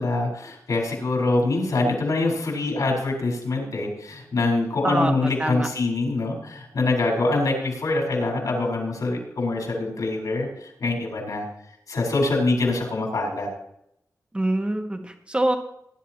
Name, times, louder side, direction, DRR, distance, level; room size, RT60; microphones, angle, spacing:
voice 1, 0.0-11.5 11.9-13.5, left 2 dB, 75° left, -1 dB, 4.6 m, -24 dB
voice 2, 4.8-5.7 14.3-15.6, right 1 dB, 20° right, 4 dB, 1.7 m, -25 dB
20.0 x 11.0 x 3.0 m, 0.76 s
wide cardioid pair, 115°, 6 cm